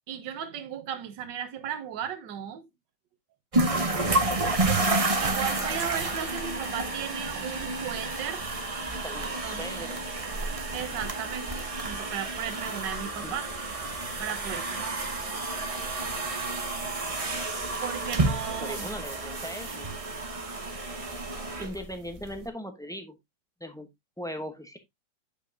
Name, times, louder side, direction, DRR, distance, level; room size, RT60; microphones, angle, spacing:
voice 1, 0.1-2.7 5.2-8.4 9.2-9.9 10.7-13.5 14.2-15.0 17.8-18.9, right 9 dB, 70° right, 1.5 m, -36 dB
sound 1, 3.5-22.4, right 2 dB, 25° right, 0.8 m, -30 dB
voice 2, 8.9-10.0 13.2-13.4 18.6-19.9 21.6-23.2 23.6-23.9 24.2-24.8, equal, 5° left, 0.5 m, -39 dB
8.7 x 5.4 x 2.7 m
omnidirectional pair, 2.1 m